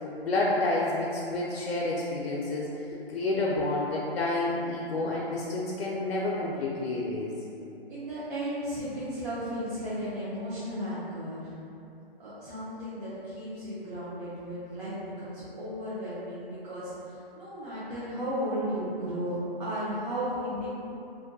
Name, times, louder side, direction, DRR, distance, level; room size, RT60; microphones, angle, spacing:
voice 1, 0.2-2.7 3.1-7.3, left 2 dB, 90° left, -4 dB, 0.5 m, -29 dB
voice 2, 7.9-11.5 12.2-20.7, equal, 45° right, -12 dB, 0.7 m, -34 dB
2.5 x 2.2 x 2.6 m, 2.7 s
hypercardioid pair, 150°, 30 cm